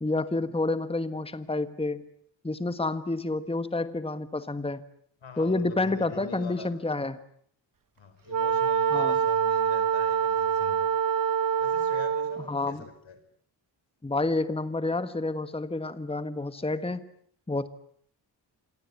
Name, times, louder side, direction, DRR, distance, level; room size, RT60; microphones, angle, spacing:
voice 1, 0.0-2.0 2.4-4.8 5.4-7.2 8.9-9.2 12.5-12.8 14.0-17.1 17.5-17.7, left 2 dB, 10° left, 12 dB, 1.4 m, -29 dB
voice 2, 5.2-6.7 8.0-10.9 11.6-13.2, left 6 dB, 80° left, 11 dB, 4.9 m, -43 dB
Wind instrument woodwind instrument, 8.3-12.5, right 7 dB, 45° right, 1.1 m, -25 dB
28.0 x 22.5 x 8.3 m, 0.64 s
cardioid pair, 80°, 45 cm